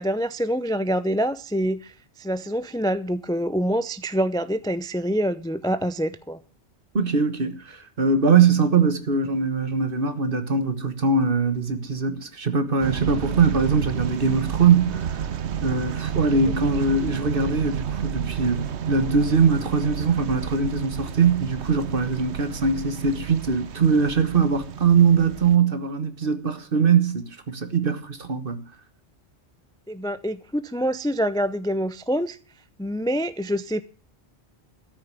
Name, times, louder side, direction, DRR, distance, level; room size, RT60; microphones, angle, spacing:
voice 1, 0.0-6.4 29.9-32.4 32.8-33.8, equal, 5° left, 0.4 m, -26 dB
voice 2, 6.9-15.2 15.6-28.6, right 5 dB, 55° right, 1.6 m, -22 dB
sound 1, 12.8-25.6, right 8 dB, 80° right, 1.1 m, -31 dB
13.0 x 6.6 x 8.3 m
omnidirectional pair, 1.1 m